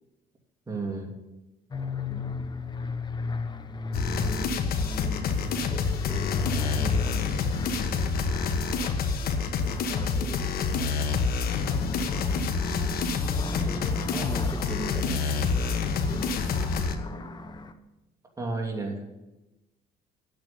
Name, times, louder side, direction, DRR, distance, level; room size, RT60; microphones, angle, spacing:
voice 1, 0.7-1.1 18.4-19.1, right 3 dB, 20° right, 1 dB, 2.8 m, -31 dB
sound 1, 1.7-17.7, left 4 dB, 25° left, 1.0 m, -36 dB
voice 2, 2.0-2.5 5.5-6.4 6.8-7.4 9.6-10.5 13.4-16.4, equal, 5° left, 3 dB, 1.9 m, -40 dB
sound 2, 3.9-17.0, left 4 dB, 65° left, 1.3 m, -27 dB
9.2 x 8.0 x 8.5 m, 1.0 s
cardioid pair, 110°, 17 cm